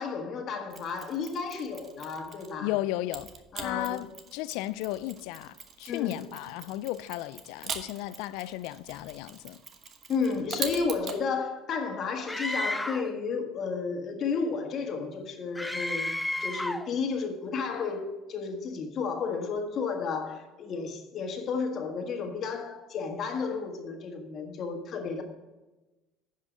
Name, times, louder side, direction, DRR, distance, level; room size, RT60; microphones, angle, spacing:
voice 1, 0.0-2.7 3.5-4.0 5.9-6.2 10.1-16.1 16.4-25.2, left 5 dB, 50° left, 1.5 m, -32 dB
Mechanisms, 0.7-2.6 3.1-11.2, right 6 dB, 45° right, 1.1 m, -42 dB
voice 2, 2.6-3.3 3.5-9.6, left 16 dB, 75° left, 0.3 m, -34 dB
Screaming, 12.3-13.1 15.6-16.9, left 1 dB, 5° left, 0.6 m, -32 dB
10.0 x 5.6 x 5.2 m
supercardioid pair, 80°, 0 cm